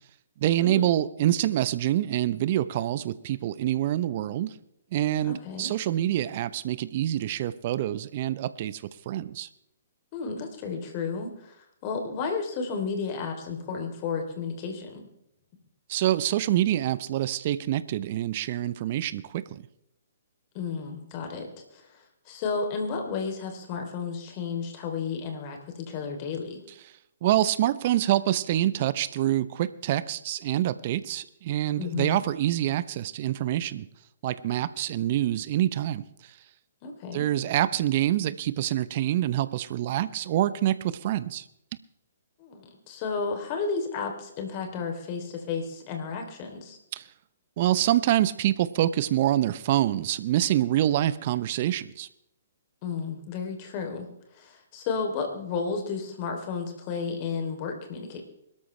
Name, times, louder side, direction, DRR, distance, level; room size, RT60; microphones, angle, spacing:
voice 1, 0.4-4.5 4.9-9.5 15.9-19.6 27.2-33.9 34.2-36.0 37.1-41.4 46.9-47.0 47.6-52.1, right 13 dB, 45° right, 16 dB, 0.8 m, -26 dB
voice 2, 5.2-5.7 10.1-11.5 11.8-15.1 20.5-22.0 22.3-26.6 31.8-32.2 36.8-37.2 42.4-46.8 52.8-54.1 54.3-58.2, left 5 dB, 35° left, 4 dB, 3.2 m, -32 dB
22.5 x 13.0 x 3.3 m, 0.79 s
figure-of-eight pair, 125°, 0 cm